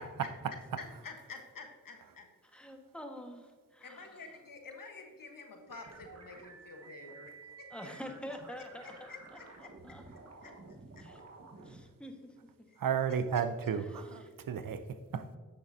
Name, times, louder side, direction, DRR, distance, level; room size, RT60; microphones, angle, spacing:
voice 1, 0.8-2.3 3.8-7.7 8.6-9.7 10.4-10.5 11.0-11.1 12.7-12.8, left 4 dB, 70° left, 3 dB, 1.3 m, -49 dB
voice 2, 2.5-4.0 7.7-8.9 9.8-10.0 10.4-10.5 11.0-11.2 11.6-12.7, equal, 5° left, 3 dB, 1.4 m, -46 dB
sound 1, 5.7-11.8, right 3 dB, 45° right, 1.3 m, -52 dB
voice 3, 12.8-15.4, right 7 dB, 70° right, 11 dB, 0.6 m, -33 dB
9.1 x 6.6 x 2.7 m, 1.5 s
cardioid pair, 45°, 34 cm